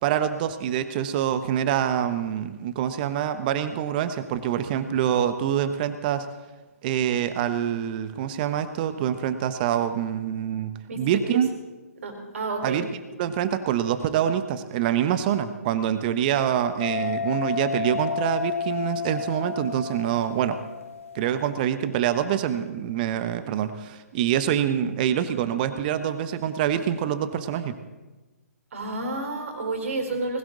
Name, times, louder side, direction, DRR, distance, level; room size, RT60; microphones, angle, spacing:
voice 1, 0.0-6.3 6.8-11.5 12.6-12.9 13.2-20.6 21.1-27.7, right 9 dB, 35° right, 10 dB, 1.1 m, -25 dB
voice 2, 12.0-12.8 28.7-30.4, right 3 dB, 55° right, 4 dB, 4.3 m, -30 dB
sound 1, 16.8-21.5, left 6 dB, 55° left, 1.5 m, -31 dB
20.0 x 17.0 x 4.0 m, 1.2 s
figure-of-eight pair, 135°, 9 cm